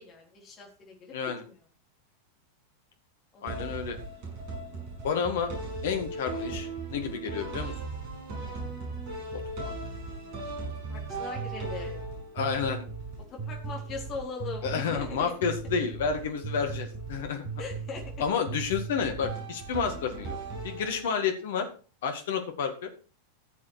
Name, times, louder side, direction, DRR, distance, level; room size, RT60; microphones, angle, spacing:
voice 1, 0.0-1.6 3.3-3.8 8.4-8.6 10.9-12.0 13.3-15.3 17.6-18.3, left 4 dB, 30° left, 0 dB, 4.1 m, -41 dB
voice 2, 3.4-4.0 5.0-5.5 5.8-7.7 9.3-9.4 12.3-12.8 14.6-17.4 18.2-20.4 20.6-21.7 22.0-22.9, left 6 dB, 55° left, 6 dB, 2.0 m, -30 dB
sound 1, 3.5-21.3, right 3 dB, 45° right, 6.8 m, -37 dB
15.5 x 7.5 x 4.6 m, 0.37 s
figure-of-eight pair, 90°, 0 cm